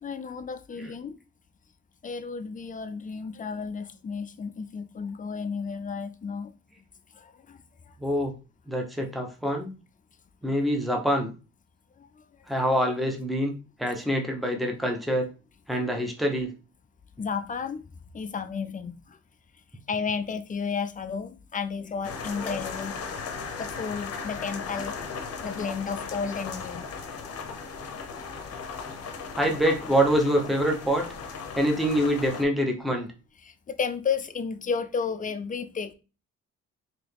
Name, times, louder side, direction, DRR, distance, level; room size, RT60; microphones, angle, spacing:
voice 1, 0.0-1.1 2.0-6.5 7.1-7.9 12.0-12.2 17.2-17.8 18.1-19.2 19.9-22.9 23.6-25.0 25.4-26.8 33.4-35.9, left 5 dB, 25° left, 0.5 m, -32 dB
voice 2, 8.0-8.3 8.7-9.7 10.4-11.3 12.5-15.3 15.7-16.5 22.4-22.6 29.4-31.0 31.6-33.1, equal, ahead, 0.9 m, -25 dB
sound 1, 22.0-32.4, left 5 dB, 55° left, 0.8 m, -37 dB
3.6 x 2.9 x 3.4 m
cardioid pair, 90°, 30 cm